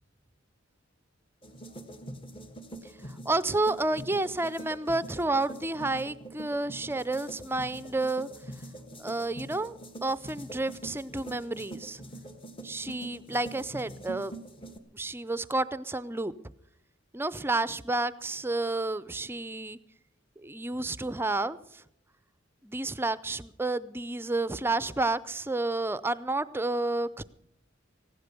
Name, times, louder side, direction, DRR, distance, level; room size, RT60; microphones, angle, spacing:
sound 1, 1.4-14.8, right 1 dB, 25° left, 1.5 m, -44 dB
voice 1, 3.0-8.3 9.0-12.0 12.6-14.4 14.9-16.3 17.1-19.8 20.4-21.8 22.6-27.2, right 2 dB, 10° right, 16 dB, 0.5 m, -30 dB
16.0 x 11.5 x 6.8 m, 0.74 s
head